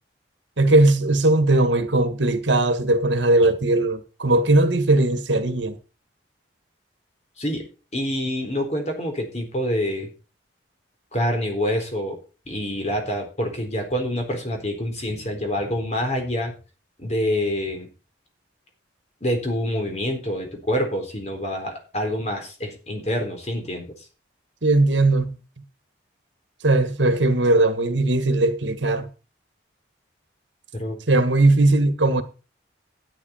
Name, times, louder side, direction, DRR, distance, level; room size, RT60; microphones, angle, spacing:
voice 1, 0.6-5.7 24.6-25.4 26.6-29.1 31.1-32.2, right 2 dB, 80° right, 1.7 m, -19 dB
voice 2, 7.4-10.1 11.1-12.2 12.5-16.5 17.0-17.9 19.2-23.9 30.7-31.0, equal, 35° left, 4.0 m, -26 dB
13.0 x 9.9 x 4.4 m
head